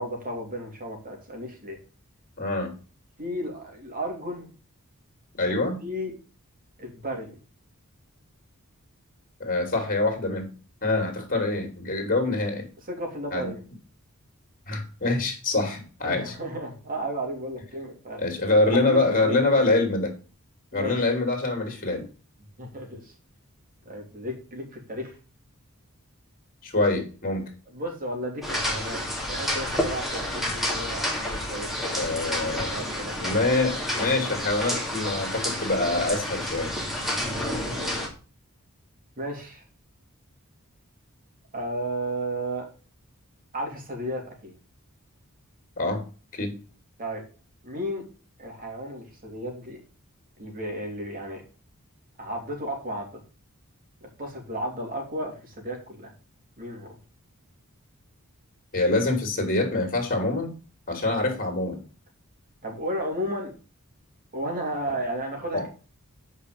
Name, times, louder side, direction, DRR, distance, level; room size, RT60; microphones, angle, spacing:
voice 1, 0.0-1.8 3.2-4.5 5.4-5.5 5.8-6.1 6.8-7.4 12.8-13.6 16.0-18.2 18.8-19.7 20.7-21.0 22.6-23.1 23.8-25.2 27.7-29.0 29.3-32.0 32.4-33.2 37.0-37.5 39.2-39.6 41.5-42.7 43.5-44.5 47.0-47.2 47.6-48.0 48.4-49.8 50.4-51.4 52.2-53.1 54.0-56.1 56.6-57.0 62.6-63.5 64.3-65.7, right 1 dB, 40° right, 1 dB, 3.4 m, -33 dB
voice 2, 2.4-2.7 5.4-5.8 9.4-10.5 10.8-12.7 13.3-13.5 14.7-16.3 18.2-20.1 20.7-22.0 26.6-27.4 31.9-32.7 33.2-36.8 45.8-46.0 46.3-46.5 58.7-60.5 60.9-61.8 65.5-65.7, left 2 dB, 40° left, 4 dB, 3.1 m, -25 dB
sound 1, 28.4-38.1, left 1 dB, ahead, 2.4 m, -30 dB
8.8 x 5.5 x 5.2 m, 0.36 s
head